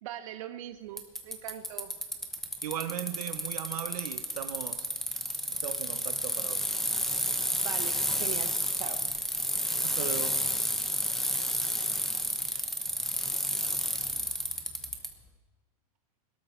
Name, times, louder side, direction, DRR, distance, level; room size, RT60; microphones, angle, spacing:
voice 1, 0.0-1.9 7.6-9.1, right 12 dB, 60° right, 1.1 m, -41 dB
Bicycle, 1.0-15.1, equal, ahead, 1.0 m, -31 dB
voice 2, 2.6-4.9 5.5-6.7 9.8-10.4, right 10 dB, 85° right, 1.0 m, -38 dB
22.0 x 13.0 x 4.5 m
supercardioid pair, 160°, 19 cm